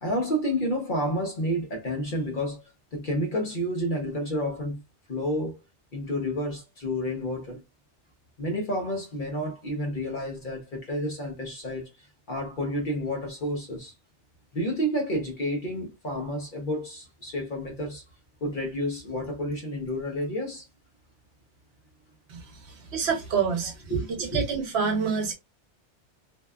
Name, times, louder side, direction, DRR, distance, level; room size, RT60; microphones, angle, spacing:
voice 1, 0.0-2.6 2.9-4.8 5.1-5.6 5.9-7.6 8.4-11.9 12.3-13.9 14.5-18.0 18.4-20.6 22.6-22.7 23.6-24.4, equal, 50° left, 0.8 m, -30 dB
voice 2, 22.9-23.7 24.2-25.3, right 6 dB, 70° right, 0.9 m, -26 dB
2.7 x 2.2 x 2.2 m
omnidirectional pair, 1.2 m